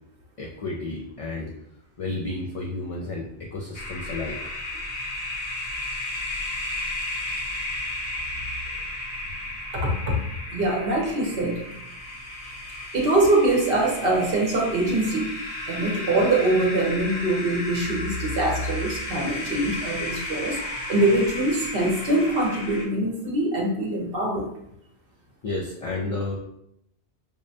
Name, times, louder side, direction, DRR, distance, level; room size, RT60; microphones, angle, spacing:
voice 1, 0.4-1.5 2.0-4.4 25.4-26.4, left 2 dB, 55° left, -2 dB, 0.4 m, -31 dB
sound 1, 3.7-22.9, left 2 dB, 70° left, 1.0 m, -34 dB
voice 2, 9.7-10.2 10.5-11.6 12.9-24.5, right 2 dB, 65° right, -1 dB, 0.9 m, -23 dB
5.1 x 2.1 x 2.6 m, 0.77 s
omnidirectional pair, 1.1 m